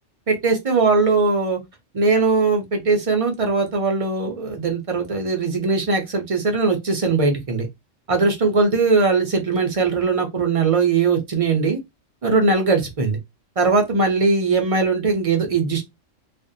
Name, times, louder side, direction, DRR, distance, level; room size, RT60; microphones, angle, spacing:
voice 1, 0.3-1.6 1.9-7.7 8.1-11.8 12.2-13.2 13.6-15.8, right 4 dB, 50° right, 0.4 m, -20 dB
2.5 x 2.1 x 2.5 m
omnidirectional pair, 1.3 m